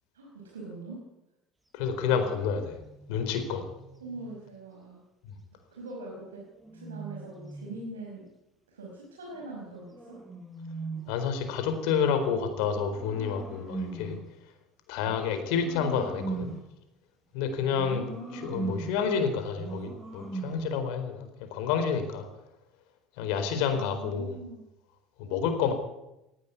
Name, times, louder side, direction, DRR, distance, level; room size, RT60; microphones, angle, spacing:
voice 1, 0.1-1.0 4.0-5.0 5.7-6.4 6.7-8.2 8.7-10.2 17.9-18.8 23.7-24.6, right 2 dB, 80° right, -2 dB, 5.1 m, -42 dB
voice 2, 1.7-2.8 3.1-3.6 11.1-14.2 14.9-16.5 17.3-18.0 18.4-22.3 23.2-24.4 25.2-25.7, left 6 dB, 65° left, 8 dB, 4.4 m, -29 dB
sound 1, 2.1-4.5 6.1-7.9 9.3-11.3 12.3-14.3 15.0-16.8 17.7-19.1 19.5-20.8, right 3 dB, 10° right, 6.5 m, -41 dB
18.5 x 15.0 x 9.7 m, 0.91 s
figure-of-eight pair, 65°, 0 cm